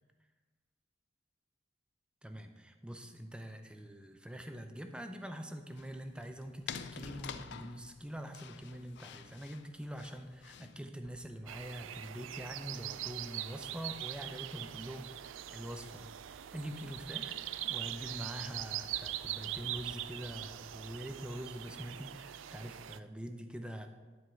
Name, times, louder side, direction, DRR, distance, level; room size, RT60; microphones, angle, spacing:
voice 1, 2.2-17.4 17.6-23.9, equal, 5° right, 6 dB, 0.6 m, -44 dB
sound 1, 5.7-10.8, left 7 dB, 60° left, 0.4 m, -48 dB
sound 2, 11.0-21.3, equal, 35° left, 2.1 m, -62 dB
sound 3, 11.5-23.0, right 13 dB, 70° right, 0.3 m, -42 dB
10.5 x 4.8 x 5.7 m, 1.3 s
head